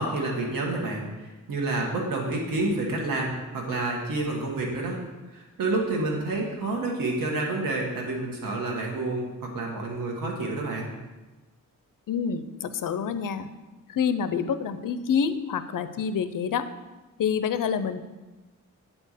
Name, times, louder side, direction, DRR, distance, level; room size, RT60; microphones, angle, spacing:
voice 1, 0.0-5.0 5.3-10.9, right 2 dB, 85° right, -1 dB, 1.5 m, -29 dB
voice 2, 12.1-13.5 13.9-16.7 17.2-18.0, left 7 dB, 75° left, 11 dB, 0.6 m, -27 dB
8.8 x 4.4 x 6.5 m, 1.2 s
cardioid pair, 85°, 33 cm